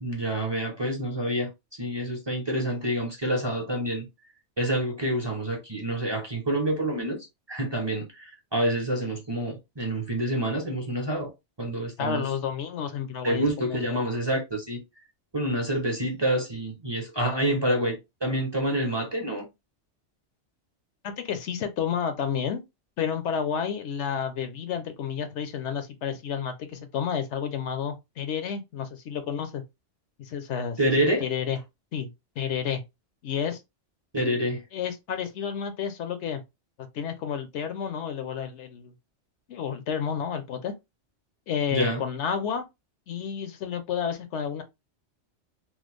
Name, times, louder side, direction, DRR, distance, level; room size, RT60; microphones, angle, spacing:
voice 1, 0.0-1.5 1.8-4.1 4.6-7.2 7.5-11.3 11.6-12.2 13.2-14.8 15.3-19.5 30.8-31.2 34.1-34.6 41.7-42.0, right 1 dB, 25° right, 0.7 m, -27 dB
voice 2, 12.0-14.1 21.0-22.6 23.0-29.6 30.2-31.6 31.9-32.1 32.4-32.8 33.2-33.6 34.7-36.4 36.8-38.9 39.5-40.7 41.5-42.7 43.1-44.6, left 7 dB, 70° left, 0.9 m, -31 dB
3.1 x 2.2 x 3.3 m
omnidirectional pair, 1.2 m